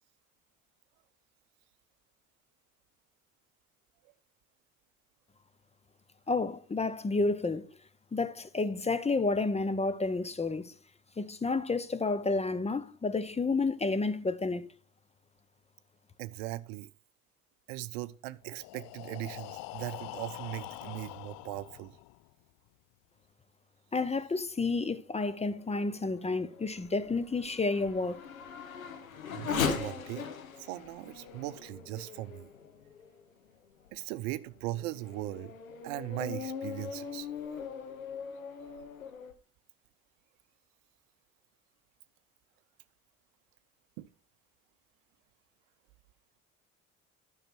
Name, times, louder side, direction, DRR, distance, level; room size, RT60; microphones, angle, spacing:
voice 1, 6.3-7.7 8.1-10.7 11.2-14.7 23.9-28.2, left 3 dB, 15° left, 0.8 m, -30 dB
voice 2, 16.2-16.9 17.7-21.9 29.3-30.3 30.6-32.5 33.9-35.5 35.8-37.3 44.0-44.1, right 17 dB, 65° right, 0.7 m, -39 dB
Breathing, 18.4-22.3, left 19 dB, 55° left, 0.5 m, -44 dB
Race car auto racing / Accelerating revving vroom, 25.3-33.2 33.9-34.0 34.6-39.3, left 6 dB, 90° left, 1.0 m, -40 dB
12.0 x 5.7 x 4.4 m
figure-of-eight pair, 55°, 40 cm